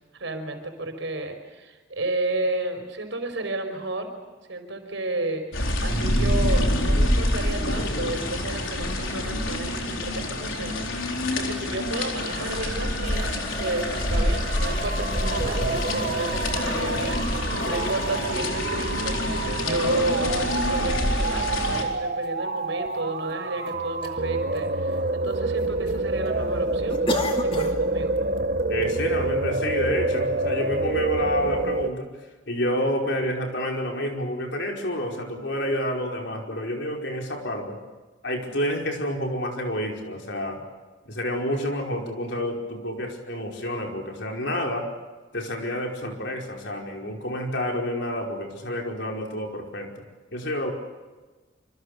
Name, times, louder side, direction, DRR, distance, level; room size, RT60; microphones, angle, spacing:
voice 1, 0.1-4.1 4.5-5.4 5.8-19.2 19.6-28.2, right 2 dB, 70° right, 6 dB, 5.2 m, -32 dB
sound 1, 5.5-21.8, left 1 dB, 85° left, 4.2 m, -26 dB
sound 2, 12.2-31.9, right 2 dB, 45° right, 1.0 m, -28 dB
sound 3, 13.0-18.4 19.1-19.2 20.8-20.9 21.2-21.3 22.2-22.3 22.6-22.7 23.3-23.7 24.0-24.2 24.5-25.3 25.6-25.9 26.2-26.3 26.9-27.8 28.2-28.4 28.8-28.9, left 2 dB, 30° left, 2.5 m, -35 dB
voice 2, 28.7-32.1 32.5-37.8 38.2-40.6 41.1-44.9 45.3-50.0 50.3-50.7, left 1 dB, 60° left, 1 dB, 5.1 m, -29 dB
27.0 x 26.0 x 6.8 m, 1.3 s
head